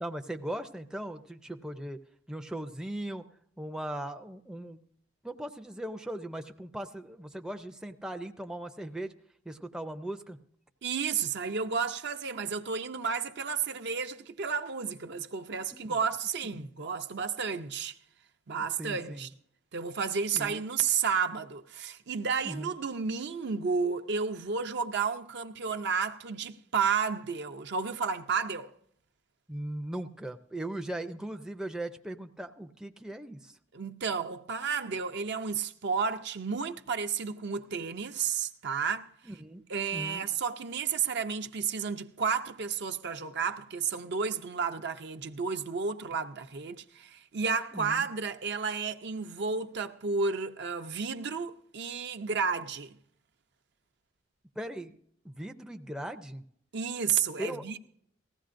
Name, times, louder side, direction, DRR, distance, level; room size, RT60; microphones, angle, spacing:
voice 1, 0.0-2.0 2.3-3.2 3.6-4.8 5.2-9.1 9.5-10.4 15.7-16.0 16.6-16.7 18.8-19.2 20.3-20.6 22.4-22.7 29.5-33.5 39.3-39.6 39.9-40.3 47.7-48.1 54.6-55.0 55.2-56.4 57.4-57.6, right 1 dB, 5° right, 0.5 m, -38 dB
voice 2, 10.8-18.0 18.5-19.3 19.7-28.7 33.7-39.1 39.7-52.9 56.7-57.8, right 5 dB, 60° right, 0.6 m, -32 dB
19.0 x 15.5 x 2.6 m
head